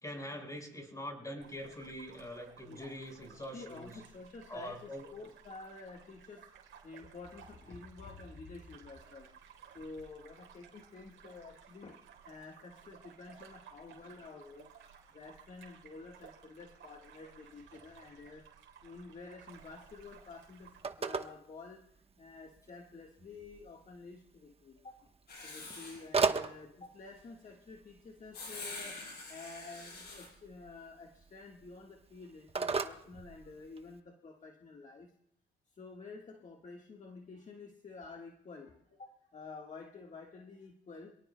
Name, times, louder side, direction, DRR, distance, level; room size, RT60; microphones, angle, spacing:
voice 1, 0.0-4.0 4.5-5.1, equal, 15° left, 2 dB, 5.0 m, -44 dB
sound 1, 1.4-20.8, right 8 dB, 80° right, 3.5 m, -58 dB
voice 2, 2.7-3.0 3.5-6.5 6.8-9.3 9.7-18.5 18.8-21.8 22.2-25.1 25.4-29.0 29.3-35.1 35.7-41.1, left 3 dB, 40° left, 1 dB, 1.5 m, -50 dB
Telephone, 19.5-34.0, right 4 dB, 30° right, 1.1 m, -40 dB
Writing, 25.3-26.1 28.3-30.3, left 3 dB, 55° left, 8.0 m, -45 dB
27.0 x 18.0 x 2.2 m, 0.75 s
cardioid pair, 90°, 20 cm